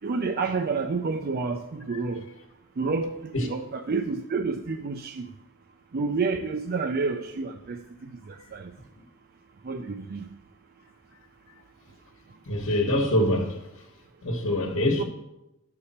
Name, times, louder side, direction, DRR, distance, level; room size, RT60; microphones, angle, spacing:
voice 1, 0.0-2.2 2.8-5.3 5.9-7.8 8.3-8.7 9.6-10.3 15.0-15.1, right 4 dB, 45° right, 0.5 m, -29 dB
voice 2, 12.5-13.6 14.2-15.0, left 1 dB, 60° left, 1.3 m, -25 dB
11.5 x 6.8 x 4.3 m
head